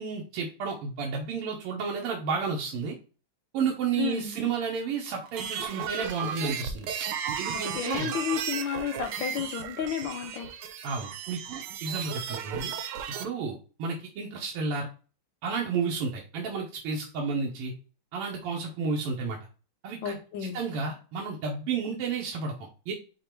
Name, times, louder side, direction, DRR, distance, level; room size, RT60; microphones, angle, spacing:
voice 1, 0.0-3.0 3.5-7.1 7.4-8.1 10.8-12.7 13.2-14.9 15.4-17.7 18.1-19.4 19.8-22.9, right 5 dB, 90° right, 0 dB, 1.7 m, -32 dB
voice 2, 4.0-4.3 7.5-10.5 20.0-20.6, left 9 dB, 75° left, 6 dB, 1.1 m, -32 dB
sound 1, 5.2-13.2, right 8 dB, 70° right, 1.0 m, -35 dB
5.3 x 2.2 x 4.4 m, 0.36 s
omnidirectional pair, 2.4 m